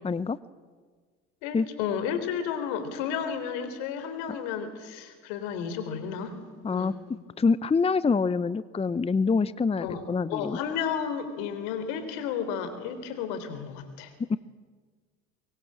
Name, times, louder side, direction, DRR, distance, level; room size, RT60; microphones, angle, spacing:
voice 1, 0.0-0.4 1.5-1.7 6.6-6.9 7.4-10.6 14.3-14.4, left 4 dB, 20° left, 17 dB, 0.8 m, -25 dB
voice 2, 1.4-6.3 6.7-7.0 9.8-10.0 10.3-14.4, left 7 dB, 75° left, 10 dB, 3.8 m, -32 dB
23.5 x 22.5 x 8.8 m, 1.5 s
hypercardioid pair, 70°, 33 cm